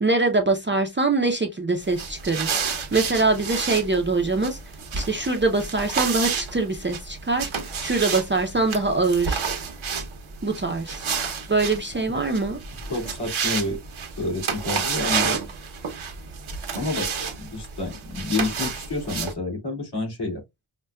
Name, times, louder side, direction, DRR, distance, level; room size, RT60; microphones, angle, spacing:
voice 1, 0.0-2.5 2.9-4.6 4.9-7.5 7.8-9.4 10.4-11.0 11.5-12.6, right 3 dB, 25° right, 0.5 m, -23 dB
sound 1, 1.8-19.3, right 6 dB, 75° right, 0.9 m, -30 dB
voice 2, 12.9-13.8 14.2-15.4 16.7-20.4, left 2 dB, 55° left, 2.0 m, -29 dB
5.5 x 2.2 x 2.3 m
wide cardioid pair, 110°, 48 cm